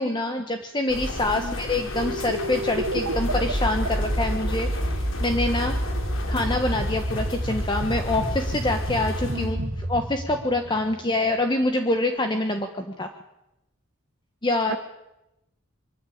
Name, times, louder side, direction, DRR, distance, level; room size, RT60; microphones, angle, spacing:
voice 1, 0.0-5.7 6.3-13.1 14.4-14.8, left 2 dB, 20° left, 5 dB, 1.2 m, -26 dB
sound 1, 0.9-9.5, left 1 dB, 70° left, 3.0 m, -34 dB
sound 2, 1.9-11.3, equal, 85° right, 2.1 m, -29 dB
voice 2, 9.3-9.7 14.7-14.8, right 1 dB, 55° right, 10 dB, 1.4 m, -34 dB
23.5 x 14.5 x 8.7 m, 0.91 s
head